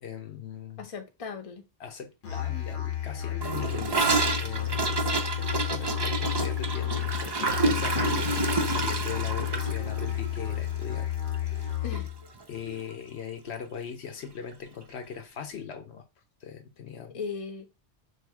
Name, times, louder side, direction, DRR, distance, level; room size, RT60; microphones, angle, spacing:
voice 1, 0.0-0.9 1.8-4.1 4.4-5.1 5.4-11.1 11.6-11.7 12.5-16.0 16.4-17.2, left 7 dB, 65° left, 1.0 m, -40 dB
voice 2, 0.8-1.6 11.8-12.1 12.6-12.9 17.1-17.7, left 5 dB, 35° left, 0.7 m, -38 dB
Musical instrument, 2.2-12.2, left 11 dB, 85° left, 1.3 m, -32 dB
Gurgling / Toilet flush, 3.4-11.7 11.9-12.1 12.4-12.8 13.1-13.2 13.5-13.6 14.5-14.6, right 3 dB, 40° right, 0.3 m, -29 dB
3.2 x 2.7 x 4.5 m
omnidirectional pair, 1.2 m